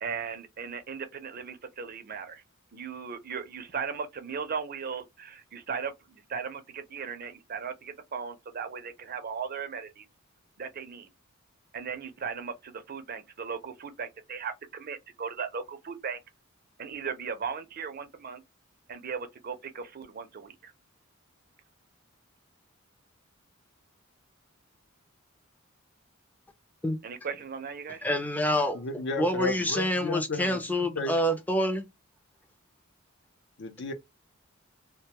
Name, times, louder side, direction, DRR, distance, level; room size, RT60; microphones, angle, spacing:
voice 1, 0.0-2.4 2.7-10.0 10.6-11.1 11.7-16.2 16.8-18.4 18.9-20.7 27.0-28.0, right 6 dB, 45° right, 0.5 m, -37 dB
voice 2, 28.0-28.8 29.2-31.8, equal, 10° left, 0.4 m, -27 dB
voice 3, 28.7-30.5 30.8-31.1 33.6-33.9, left 3 dB, 60° left, 0.5 m, -33 dB
2.2 x 2.1 x 2.8 m
head